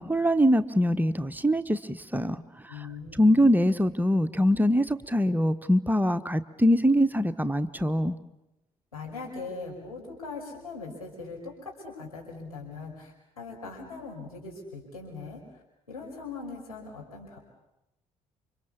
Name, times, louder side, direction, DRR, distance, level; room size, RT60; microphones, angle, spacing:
voice 1, 0.0-2.4 3.2-8.2, equal, 10° right, 10 dB, 1.2 m, -23 dB
voice 2, 2.7-3.5 8.9-15.4 15.9-17.4, left 4 dB, 90° left, -3 dB, 5.5 m, -40 dB
29.5 x 25.0 x 7.1 m, 0.91 s
figure-of-eight pair, 50°, 18 cm